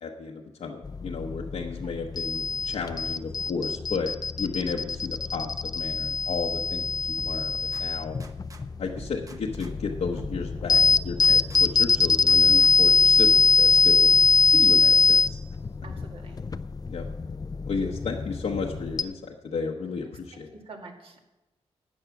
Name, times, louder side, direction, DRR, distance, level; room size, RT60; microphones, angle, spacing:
voice 1, 0.0-4.1 4.4-6.9 7.2-8.2 8.8-10.8 11.0-14.1 14.4-15.4 16.9-17.0 17.7-20.5, left 4 dB, 80° left, -1 dB, 1.0 m, -33 dB
sound 1, 0.8-19.0, left 4 dB, 35° left, 0.5 m, -23 dB
sound 2, 7.2-8.6 9.0-11.6 12.0-13.0, right 2 dB, 30° right, 1.1 m, -46 dB
voice 2, 15.8-16.4 20.3-21.2, right 3 dB, 55° right, 1 dB, 2.2 m, -46 dB
13.0 x 8.7 x 5.9 m, 1.0 s
wide cardioid pair, 95°, 11 cm